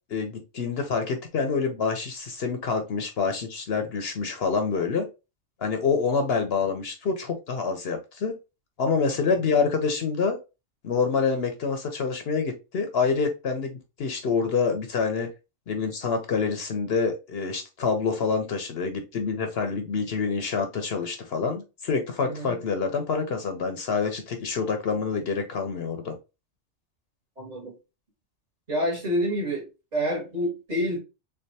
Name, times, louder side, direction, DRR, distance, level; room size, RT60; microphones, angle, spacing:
voice 1, 0.1-5.0 5.6-8.4 8.8-10.4 10.8-15.3 15.7-26.2, left 5 dB, 60° left, 0.8 m, -27 dB
voice 2, 22.2-22.6 27.4-27.8 28.7-31.0, equal, 35° right, 1.6 m, -28 dB
3.5 x 3.3 x 2.7 m
omnidirectional pair, 1.2 m